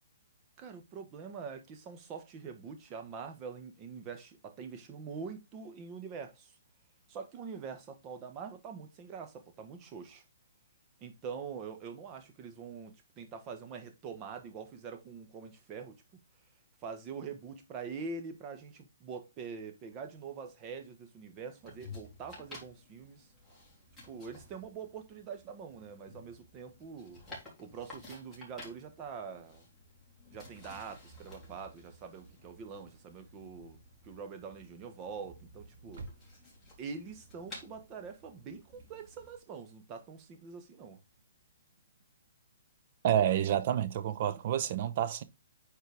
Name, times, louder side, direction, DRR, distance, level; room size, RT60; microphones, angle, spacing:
voice 1, 0.6-6.6 7.1-10.2 11.0-16.0 16.8-23.3 24.1-27.2 27.6-29.7 30.3-33.8 34.0-36.0 36.8-41.0, right 5 dB, 25° right, 1.4 m, -44 dB
sound 1, 21.6-39.4, left 2 dB, 5° left, 3.7 m, -53 dB
sound 2, 35.7-42.5 42.8-43.0 43.3-43.4, right 3 dB, 60° right, 1.9 m, -55 dB
voice 2, 43.0-45.2, right 10 dB, 40° right, 0.8 m, -29 dB
9.3 x 4.5 x 3.5 m
hypercardioid pair, 160°, 0 cm